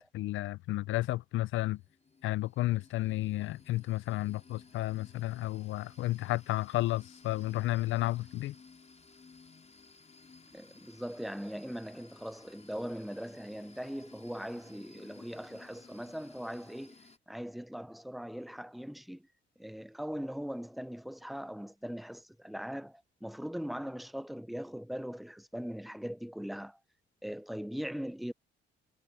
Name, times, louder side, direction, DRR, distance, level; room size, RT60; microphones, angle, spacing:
voice 1, 0.1-1.8 2.2-8.5, left 17 dB, 80° left, 0.5 m, -32 dB
sound 1, 1.5-17.2, left 4 dB, 35° left, 4.5 m, -58 dB
voice 2, 10.5-17.0 17.3-19.3 19.6-26.8 27.2-28.3, equal, ahead, 0.6 m, -40 dB
cardioid pair, 90°, 20 cm